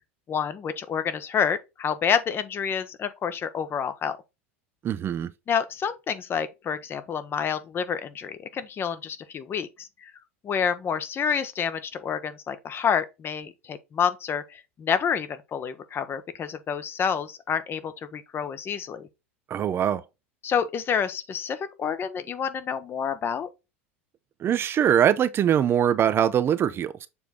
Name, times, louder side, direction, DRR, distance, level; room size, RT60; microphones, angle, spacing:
voice 1, 0.3-4.2 5.5-10.1 10.4-19.1 20.4-23.5, left 7 dB, 35° left, 0.9 m, -28 dB
voice 2, 4.8-5.3 19.5-20.0 24.4-27.1, right 9 dB, 35° right, 0.5 m, -22 dB
7.0 x 3.4 x 4.0 m
hypercardioid pair, 85°, 7 cm